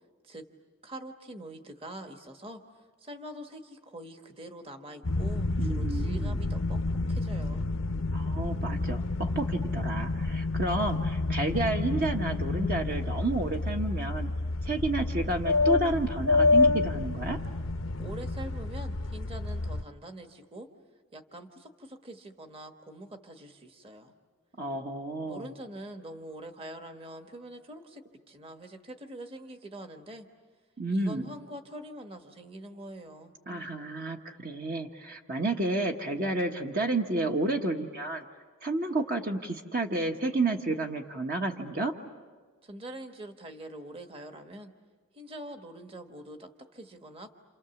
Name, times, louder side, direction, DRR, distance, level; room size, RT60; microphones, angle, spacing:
voice 1, 0.8-6.8 7.1-7.6 18.0-20.7 21.1-24.1 25.2-30.3 30.9-33.3 42.6-44.7 45.1-47.3, right 1 dB, 25° right, 5 dB, 1.3 m, -44 dB
sound 1, 5.0-19.8, left 3 dB, 75° left, 0.7 m, -29 dB
voice 2, 5.6-6.4 8.1-14.3 14.6-17.4 24.6-25.5 30.8-31.3 33.5-38.2 38.6-41.9, right 2 dB, 45° right, 2 dB, 1.2 m, -31 dB
29.5 x 28.5 x 7.1 m, 1.4 s
head